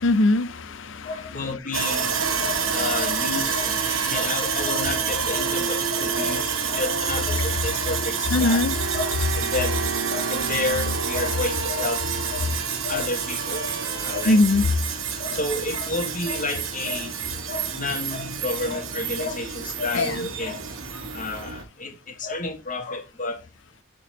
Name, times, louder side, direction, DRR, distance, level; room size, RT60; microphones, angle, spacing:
voice 1, 0.0-1.3 2.2-2.9 3.9-4.1 8.3-8.8 14.3-14.7 19.9-20.3, left 2 dB, 65° left, 0.6 m, -22 dB
voice 2, 1.0-2.1 2.4-3.8 4.0-8.6 8.9-9.8 10.1-12.5 12.8-14.4 15.2-17.1 17.5-20.6 21.1-23.4, left 3 dB, 40° left, 1.3 m, -30 dB
Sawing, 1.7-21.6, right 6 dB, 75° right, 1.2 m, -28 dB
sound 1, 2.2-14.6, right 3 dB, 55° right, 1.7 m, -33 dB
11.0 x 3.9 x 2.8 m
head